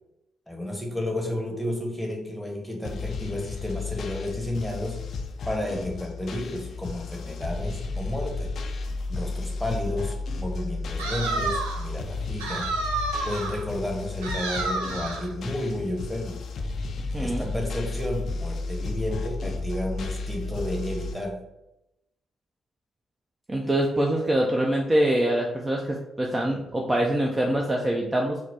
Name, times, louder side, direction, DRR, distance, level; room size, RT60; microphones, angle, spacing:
voice 1, 0.5-5.0 5.4-8.5 9.1-12.7 13.2-16.4 17.2-21.4, left 1 dB, ahead, 0 dB, 1.0 m, -32 dB
sound 1, 2.8-21.1, left 3 dB, 55° left, 0.3 m, -33 dB
sound 2, 11.0-11.9 12.4-13.6 14.2-15.3, right 3 dB, 80° right, 0.4 m, -30 dB
voice 2, 17.1-17.5 23.5-28.4, right 1 dB, 25° right, 0 dB, 0.5 m, -24 dB
4.0 x 2.0 x 2.8 m, 0.87 s
figure-of-eight pair, 40°, 0 cm